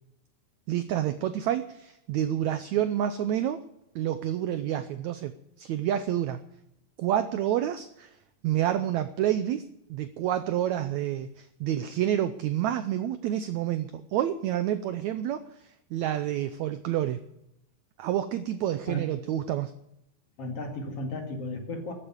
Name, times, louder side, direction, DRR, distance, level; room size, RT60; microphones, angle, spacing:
voice 1, 0.7-3.6 3.9-5.3 5.6-6.4 7.0-8.2 8.4-17.2 18.0-19.7, right 11 dB, 80° right, 11 dB, 1.6 m, -28 dB
voice 2, 20.4-21.9, equal, 45° left, 3 dB, 2.8 m, -34 dB
14.5 x 8.9 x 9.7 m, 0.83 s
omnidirectional pair, 4.1 m